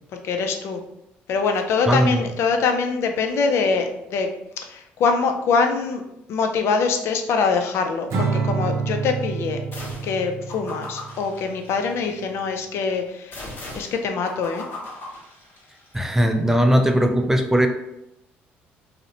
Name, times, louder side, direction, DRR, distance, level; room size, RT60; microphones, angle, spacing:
voice 1, 0.2-0.8 1.3-4.3 4.6-6.0 6.3-9.6 10.0-13.4 13.7-14.6, left 5 dB, 65° left, 5 dB, 0.4 m, -23 dB
voice 2, 1.9-2.2 15.9-17.7, equal, 10° right, 5 dB, 0.4 m, -19 dB
Acoustic guitar / Strum, 8.1-11.4, right 5 dB, 65° right, 0.6 m, -27 dB
sound 1, 9.7-10.2 10.5-12.2 13.3-15.9, left 2 dB, 45° left, 0.9 m, -38 dB
2.5 x 2.0 x 2.8 m, 0.84 s
supercardioid pair, 70°, 5 cm